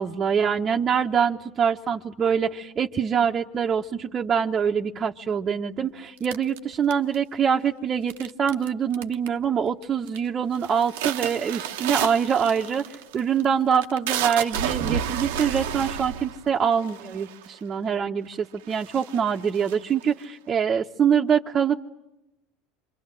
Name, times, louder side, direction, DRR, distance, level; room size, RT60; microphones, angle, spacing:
voice 1, 0.0-12.8 13.1-21.8, right 7 dB, 35° right, 1 dB, 1.1 m, -24 dB
sound 1, 6.2-7.3 8.1-8.7 8.9-9.4 9.8-10.2 10.5-17.6 18.3-18.4 18.6-20.2, right 9 dB, 70° right, 1.0 m, -31 dB
28.0 x 25.5 x 7.6 m, 0.92 s
hypercardioid pair, 80°, 0 cm